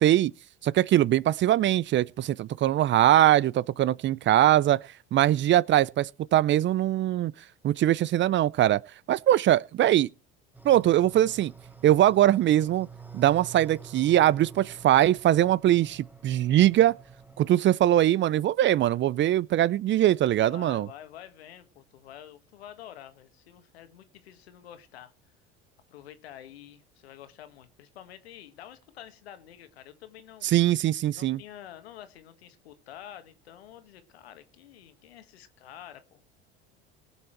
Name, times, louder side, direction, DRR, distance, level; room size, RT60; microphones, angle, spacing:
voice 1, 0.0-0.3 0.6-4.8 5.1-7.3 7.6-8.8 9.1-10.1 10.6-11.5 11.8-12.9 13.1-16.9 17.4-20.9 30.4-31.4, right 13 dB, 40° right, 0.5 m, -22 dB
sound 1, 10.5-17.5, right 6 dB, 5° right, 1.3 m, -48 dB
voice 2, 20.4-25.1 25.9-30.5 31.1-36.2 36.7-36.8, left 11 dB, 90° left, 1.6 m, -48 dB
18.5 x 7.1 x 4.5 m
hypercardioid pair, 80°, 30 cm